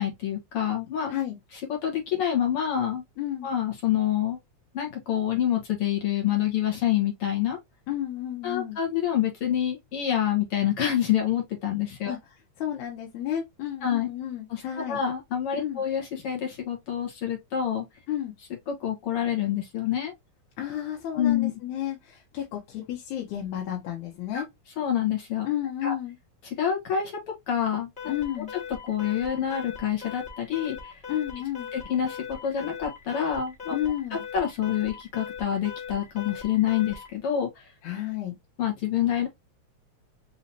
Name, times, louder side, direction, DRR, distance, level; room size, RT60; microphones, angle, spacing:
voice 1, 0.0-1.1 1.7-3.0 3.4-4.4 4.7-7.6 8.4-12.2 13.8-14.1 14.5-17.9 18.7-20.1 21.2-21.5 24.3-24.4 24.8-25.5 25.8-25.9 26.4-28.1 28.9-30.9 31.7-33.8 34.1-37.7 38.6-39.3, left 10 dB, 55° left, 2.0 m, -27 dB
voice 2, 3.2-3.5 7.9-8.8 12.1-12.2 12.6-15.0 15.6-15.8 18.1-18.3 20.6-24.5 25.4-26.2 28.1-28.5 31.1-31.7 33.7-34.2 37.8-38.4, left 11 dB, 90° left, 2.3 m, -32 dB
Alarm, 28.0-37.2, left 7 dB, 25° left, 1.3 m, -40 dB
5.5 x 3.0 x 2.7 m
omnidirectional pair, 3.3 m